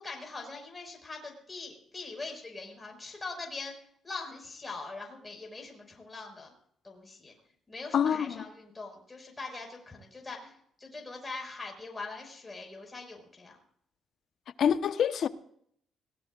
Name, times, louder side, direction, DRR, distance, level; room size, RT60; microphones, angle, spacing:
voice 1, 0.0-3.8 4.0-6.5 6.8-7.3 7.7-13.6, left 3 dB, 20° left, 5.5 m, -42 dB
voice 2, 7.9-8.4 14.6-15.3, left 8 dB, 65° left, 1.1 m, -26 dB
25.0 x 18.0 x 2.5 m
cardioid pair, 90°, 0 cm